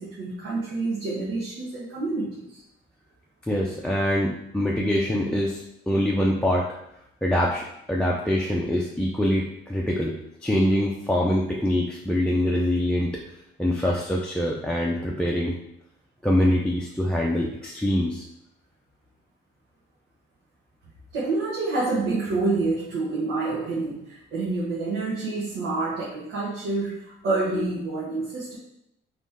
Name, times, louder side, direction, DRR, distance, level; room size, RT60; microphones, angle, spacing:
voice 1, 0.0-2.6 21.1-28.6, right 3 dB, 90° right, -7 dB, 1.2 m, -28 dB
voice 2, 3.5-6.7 7.2-10.1 10.4-13.2 13.6-15.5 16.2-18.2, left 1 dB, 5° left, -3 dB, 0.6 m, -24 dB
3.5 x 3.1 x 4.2 m, 0.80 s
cardioid pair, 90°, 20 cm